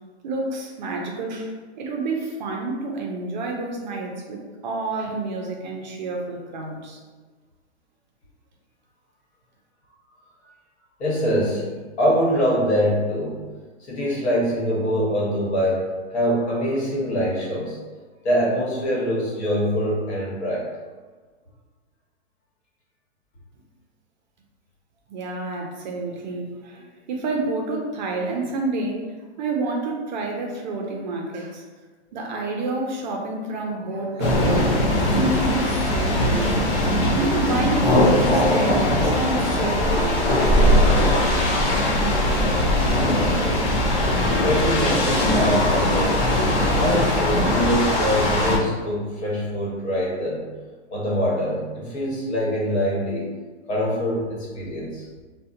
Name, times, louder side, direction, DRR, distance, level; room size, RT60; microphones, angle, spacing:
voice 1, 0.2-1.5 1.8-7.0 25.1-29.1 29.4-31.6 32.1-34.9 35.1-36.6 37.0-40.3, right 3 dB, 40° right, 1 dB, 0.4 m, -29 dB
voice 2, 11.0-11.7 12.0-13.4 13.8-17.8 18.2-20.7 44.4-46.3 46.8-50.5 50.9-53.3 53.7-55.0, equal, 65° left, -4 dB, 1.2 m, -24 dB
sound 1, 34.2-48.6, left 1 dB, 25° left, 0.4 m, -20 dB
2.7 x 2.1 x 2.5 m, 1.4 s
hypercardioid pair, 140°, 34 cm